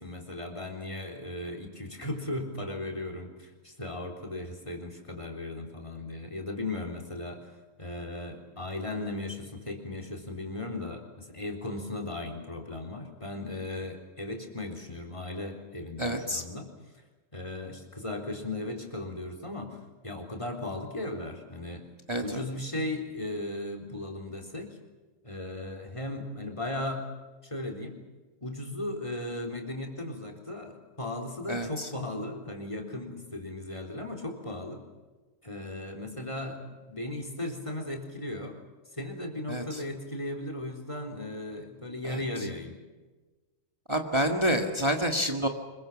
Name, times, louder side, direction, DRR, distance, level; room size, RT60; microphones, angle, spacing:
voice 1, 0.0-16.7 17.3-19.8 20.0-21.9 22.2-24.8 25.2-27.0 27.4-27.9 28.4-34.8 35.4-38.6 38.9-42.7, left 1 dB, 25° left, 5 dB, 3.8 m, -37 dB
voice 2, 16.0-16.4 22.1-22.4 31.5-31.9 39.5-39.8 42.0-42.2 43.9-45.5, equal, 20° right, 3 dB, 1.9 m, -28 dB
26.0 x 22.5 x 7.4 m, 1.2 s
omnidirectional pair, 1.4 m